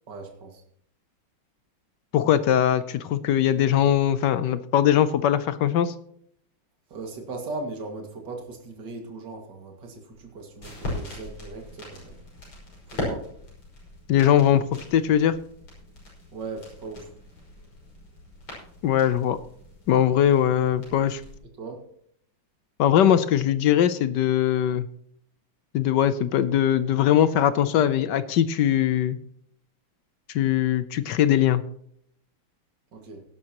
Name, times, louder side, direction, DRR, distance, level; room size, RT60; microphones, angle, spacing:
voice 1, 0.1-0.6 6.9-12.2 12.9-13.3 16.3-17.1 21.6-21.8 32.9-33.2, right 3 dB, 55° right, 3 dB, 2.7 m, -38 dB
voice 2, 2.1-5.9 14.1-14.6 14.9-15.3 18.8-19.4 19.9-21.2 22.8-24.9 25.7-29.2 30.3-31.6, left 10 dB, 70° left, 14 dB, 1.1 m, -21 dB
sound 1, 10.1-21.4, left 1 dB, 85° left, 6.2 m, -40 dB
17.0 x 11.0 x 2.9 m, 0.67 s
omnidirectional pair, 2.3 m